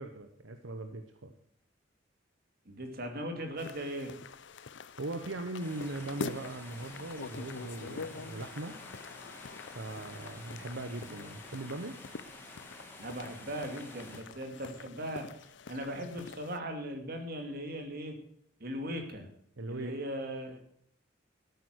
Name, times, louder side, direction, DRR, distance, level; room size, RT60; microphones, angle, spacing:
voice 1, 0.0-1.3 5.0-8.8 9.7-12.0 19.6-19.9, right 2 dB, 80° right, 7 dB, 1.0 m, -40 dB
voice 2, 2.7-4.1 13.0-15.2 15.7-18.1 18.6-19.3 19.7-20.6, equal, 50° right, 4 dB, 2.4 m, -38 dB
sound 1, 3.6-16.6, left 4 dB, 65° left, 0.6 m, -46 dB
sound 2, 5.6-14.2, left 1 dB, 10° left, 2.2 m, -50 dB
12.5 x 9.5 x 6.4 m, 0.69 s
head